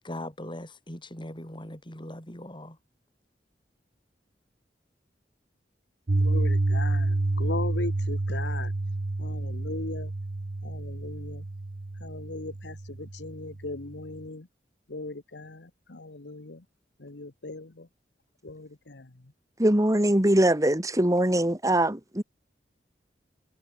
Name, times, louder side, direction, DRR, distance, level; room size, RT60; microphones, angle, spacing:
voice 1, 0.0-2.8, left 1 dB, 30° left, 7.3 m, -40 dB
Piano, 6.1-14.2, right 2 dB, 55° right, 0.8 m, -29 dB
voice 2, 6.2-8.7 9.2-10.1 10.6-11.4 12.0-14.4 14.9-15.6 15.9-16.6 17.0-17.7 18.4-19.0, left 2 dB, 85° left, 1.3 m, -38 dB
voice 3, 19.6-22.2, right 1 dB, 20° right, 2.2 m, -22 dB
head